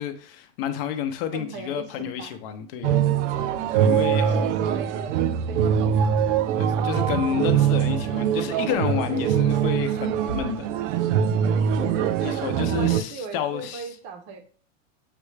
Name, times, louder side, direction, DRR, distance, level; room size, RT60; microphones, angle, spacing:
voice 1, 0.0-3.0 3.7-4.5 6.6-10.7 12.2-13.9, left 9 dB, 50° left, 0.6 m, -30 dB
voice 2, 1.3-2.4 3.0-3.8 4.2-5.2 5.5-5.6 11.8-12.4 12.7-14.4, right 4 dB, 30° right, 0.6 m, -37 dB
sound 1, 2.8-13.0, right 8 dB, 70° right, 0.5 m, -23 dB
6.6 x 2.3 x 3.2 m
supercardioid pair, 145°, 37 cm